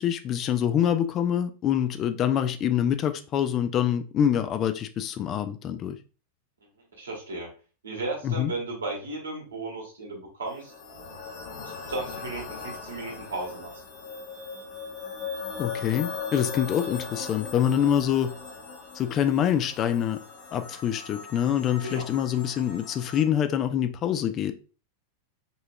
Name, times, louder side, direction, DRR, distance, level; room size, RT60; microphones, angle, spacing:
voice 1, 0.0-6.0 8.2-8.5 15.6-18.3 19.0-20.2 20.5-24.5, left 9 dB, 30° left, 0.4 m, -25 dB
voice 2, 6.9-7.5 7.8-10.7 11.9-13.7 21.8-22.1, right 2 dB, 70° right, 1.5 m, -34 dB
sound 1, 10.5-23.2, left 5 dB, 50° left, 1.0 m, -39 dB
5.5 x 2.8 x 2.2 m
figure-of-eight pair, 90°, 0 cm